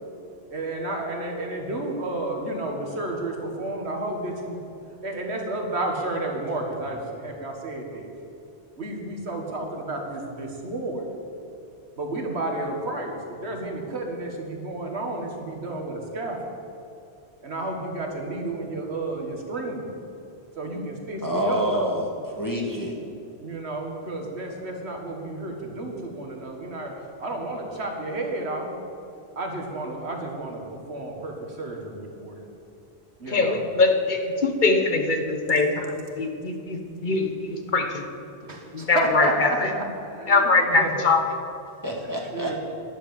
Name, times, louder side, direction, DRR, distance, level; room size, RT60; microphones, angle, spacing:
voice 1, 0.5-4.6 5.0-8.1 8.8-11.1 12.0-16.4 17.4-20.0 20.6-21.7 23.4-26.9 27.2-28.7 29.4-32.4 33.2-33.6 38.5-41.0 42.0-42.6, right 2 dB, 85° right, 1 dB, 2.0 m, -31 dB
voice 2, 21.2-22.9 41.8-42.6, equal, 20° left, -2 dB, 1.7 m, -27 dB
voice 3, 33.3-38.0 38.7-39.3 40.3-41.2, left 3 dB, 50° left, 4 dB, 1.3 m, -22 dB
11.0 x 10.0 x 7.1 m, 2.6 s
omnidirectional pair, 1.1 m